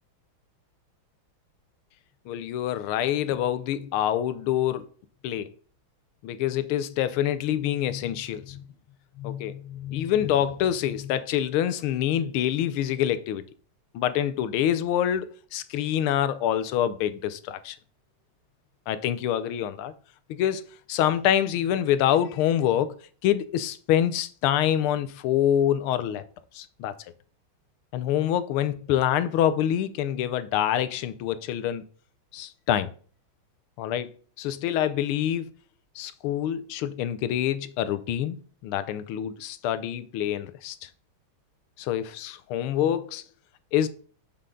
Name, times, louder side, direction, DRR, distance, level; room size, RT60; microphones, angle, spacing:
voice 1, 2.3-4.9 5.2-5.5 6.2-8.6 9.2-13.4 13.9-17.8 18.9-19.9 20.3-23.0 23.2-26.2 26.5-27.0 27.9-31.8 32.3-32.9 33.8-35.5 35.9-38.4 38.6-40.9 41.8-43.2 43.7-43.9, left 11 dB, 90° left, 1.5 m, -26 dB
6.8 x 5.7 x 3.7 m
omnidirectional pair, 2.3 m